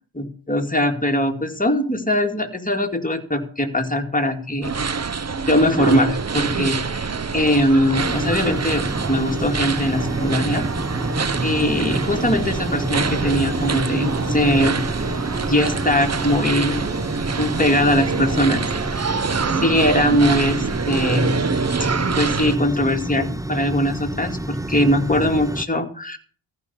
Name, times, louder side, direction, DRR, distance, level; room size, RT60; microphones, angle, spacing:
voice 1, 0.2-4.7 5.5-7.1 7.3-10.6 11.4-14.8 15.5-16.9 17.4-18.6 18.9-19.2 19.5-21.5 22.2-26.2, left 1 dB, 15° left, 4 dB, 2.4 m, -21 dB
sound 1, 4.6-22.6, right 5 dB, 30° right, 0.9 m, -25 dB
sound 2, 8.0-25.7, right 1 dB, 5° right, 0.9 m, -29 dB
14.5 x 5.6 x 8.3 m, 0.43 s
cardioid pair, 50°, 49 cm